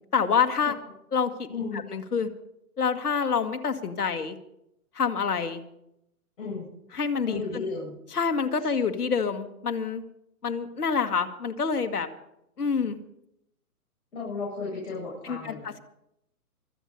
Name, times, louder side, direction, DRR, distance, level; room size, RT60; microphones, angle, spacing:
voice 1, 0.1-0.8 1.1-1.5 1.7-2.3 2.8-4.4 5.0-5.6 6.9-7.7 8.1-10.0 10.4-12.1 12.6-13.0 15.2-15.8, left 6 dB, 80° left, 8 dB, 2.1 m, -27 dB
voice 2, 1.5-1.9 6.4-6.7 7.3-7.9 14.1-15.8, left 4 dB, 55° left, -5 dB, 7.9 m, -34 dB
24.5 x 8.5 x 5.4 m, 0.78 s
hypercardioid pair, 140°, 45 cm